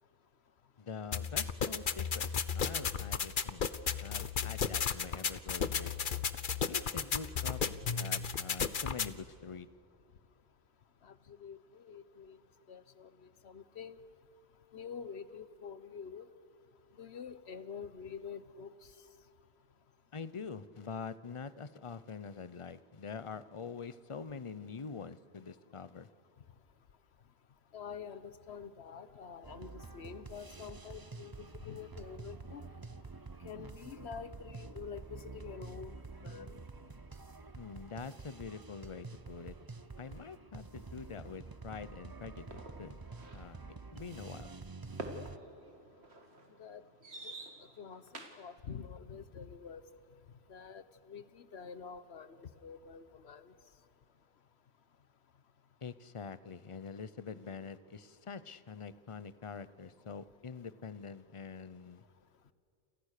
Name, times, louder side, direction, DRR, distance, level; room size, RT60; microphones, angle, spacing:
voice 1, 0.8-3.7 4.0-5.9 6.7-9.7 20.1-26.1 37.5-39.6 40.0-43.0 43.3-44.5 55.8-62.0, left 5 dB, 35° left, 15 dB, 0.8 m, -45 dB
sound 1, 1.1-9.1, left 6 dB, 55° left, 1.1 m, -34 dB
voice 2, 11.0-12.4 12.7-14.0 14.7-16.3 16.9-19.1 27.7-32.7 33.4-36.6 46.6-46.8 47.2-49.9 50.5-53.5, left 6 dB, 85° left, 14 dB, 1.3 m, -47 dB
sound 2, 29.4-45.4, right 3 dB, 25° right, 0.6 m, -48 dB
sound 3, 42.5-48.6, right 2 dB, 85° right, 2.4 m, -48 dB
29.0 x 28.0 x 6.7 m, 2.5 s
omnidirectional pair, 1.1 m